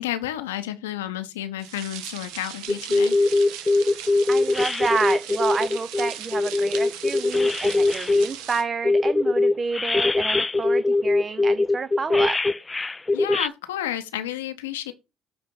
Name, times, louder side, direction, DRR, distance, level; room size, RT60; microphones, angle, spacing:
voice 1, 0.0-3.4 13.1-14.9, left 12 dB, 80° left, 0.7 m, -31 dB
sound 1, 1.6-8.6, right 10 dB, 70° right, 0.9 m, -38 dB
sound 2, 2.7-8.3 8.8-13.5, left 2 dB, 20° left, 0.3 m, -21 dB
voice 2, 4.3-12.4, right 5 dB, 35° right, 0.5 m, -29 dB
7.8 x 3.6 x 5.5 m
hypercardioid pair, 55°, 0 cm